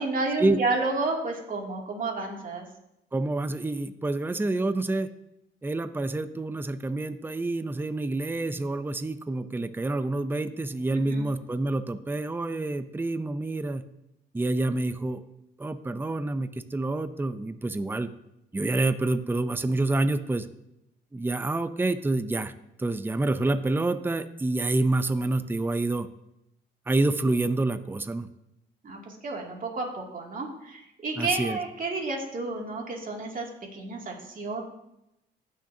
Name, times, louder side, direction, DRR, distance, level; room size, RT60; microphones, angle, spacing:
voice 1, 0.0-2.6 10.9-11.3 28.8-34.6, right 3 dB, 45° right, 0 dB, 2.6 m, -31 dB
voice 2, 3.1-5.1 5.6-13.8 14.3-15.2 15.6-18.1 18.5-20.5 21.1-22.5 22.8-26.1 26.9-28.3 31.2-31.6, right 2 dB, 10° right, 11 dB, 0.6 m, -27 dB
16.0 x 6.5 x 2.8 m, 0.84 s
cardioid pair, 90°, 20 cm